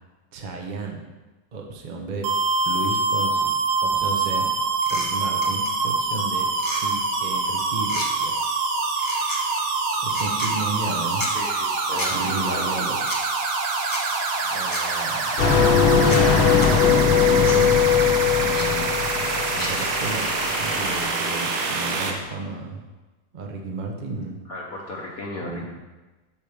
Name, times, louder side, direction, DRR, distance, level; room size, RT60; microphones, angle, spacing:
voice 1, 0.3-1.0 1.5-2.3 2.6-3.5 3.8-4.5 4.9-6.5 6.8-8.8 10.0-11.2 12.1-13.0 14.4-19.0 19.3-22.8 23.3-24.4 25.4-25.7, right 3 dB, 60° right, 1 dB, 0.4 m, -33 dB
sound 1, 2.2-22.1, right 3 dB, 80° right, 1.8 m, -25 dB
sound 2, 4.8-5.1 5.4-5.7 6.5-6.8 7.8-8.1 9.0-9.4 10.1-10.5 11.2-11.3 12.0-12.1 13.0-13.2 13.9-14.0 14.7-14.8 15.4-15.5 16.1-16.2 16.6-16.7 17.4-17.6 18.6-18.7 19.6-19.7, left 1 dB, 20° left, 0.5 m, -31 dB
voice 2, 11.1-12.9 18.4-18.8 24.5-25.7, left 2 dB, 60° left, -2 dB, 1.0 m, -36 dB
sound 3, 15.4-21.1, left 7 dB, 75° left, 1.7 m, -20 dB
8.7 x 6.5 x 3.5 m, 1.2 s
omnidirectional pair, 2.4 m